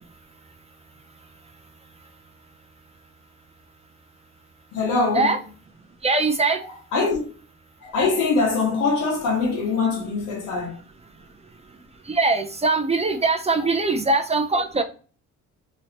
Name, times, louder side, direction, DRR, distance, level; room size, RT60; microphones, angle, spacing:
voice 1, 4.7-5.4 6.6-7.2 7.8-10.8, left 4 dB, 90° left, 1.3 m, -23 dB
voice 2, 6.0-6.6 12.1-14.8, right 3 dB, 20° right, 0.4 m, -21 dB
3.1 x 2.8 x 2.8 m
cardioid pair, 90°, 30 cm